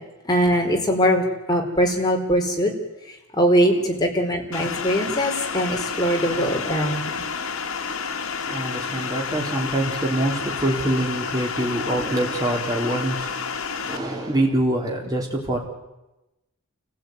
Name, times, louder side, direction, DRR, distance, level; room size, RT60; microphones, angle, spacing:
voice 1, 0.2-2.7 3.3-7.2, equal, 20° left, 1 dB, 4.4 m, -21 dB
sound 1, 4.5-14.0, left 5 dB, 70° left, 2.0 m, -30 dB
voice 2, 6.2-6.8 7.9-8.0 8.5-13.3 13.6-15.6, right 1 dB, 15° right, -1 dB, 4.1 m, -25 dB
29.0 x 16.0 x 9.6 m, 1.0 s
head